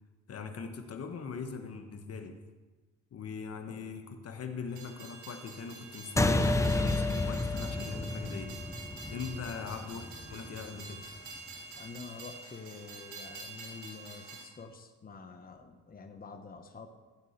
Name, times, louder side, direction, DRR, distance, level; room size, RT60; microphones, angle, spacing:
voice 1, 0.3-2.4 3.1-8.6 9.1-11.0, left 5 dB, 55° left, 6 dB, 1.4 m, -41 dB
Train, 4.7-14.4, right 3 dB, 85° right, 3.9 m, -47 dB
sound 1, 6.2-11.0, left 2 dB, 10° left, 0.7 m, -31 dB
voice 2, 11.7-16.9, left 5 dB, 30° left, 5 dB, 1.2 m, -47 dB
15.0 x 5.4 x 8.1 m, 1.3 s
cardioid pair, 90°, 30 cm